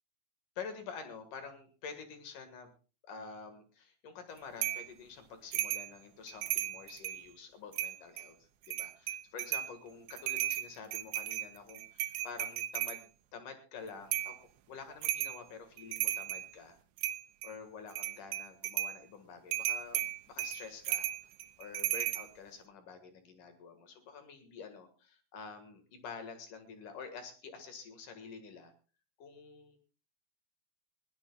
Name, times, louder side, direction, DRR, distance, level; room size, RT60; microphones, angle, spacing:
voice 1, 0.6-2.7 3.0-16.8 17.4-21.1 21.6-28.7 29.2-29.8, left 5 dB, 60° left, 8 dB, 2.9 m, -48 dB
sound 1, 4.6-4.9 5.5-5.9 6.3-7.2 7.7-8.3 8.7-9.7 10.1-13.0 14.1-14.4 15.0-15.4 15.8-16.5 17.0-17.5 17.9-19.0 19.5-22.3, right 13 dB, 85° right, 3.1 m, -35 dB
20.5 x 16.5 x 2.4 m, 0.34 s
omnidirectional pair, 4.8 m